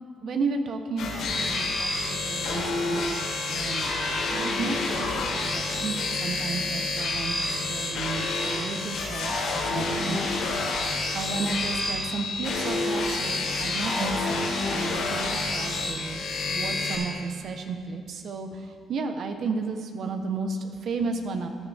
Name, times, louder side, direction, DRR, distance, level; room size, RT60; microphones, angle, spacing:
voice 1, 0.2-3.9 4.3-14.4 14.7-21.5, right 4 dB, 65° right, 6 dB, 1.1 m, -33 dB
sound 1, 1.0-16.9, left 3 dB, 90° left, 2.6 m, -28 dB
16.0 x 10.5 x 3.6 m, 2.1 s
cardioid pair, 90°, 0 cm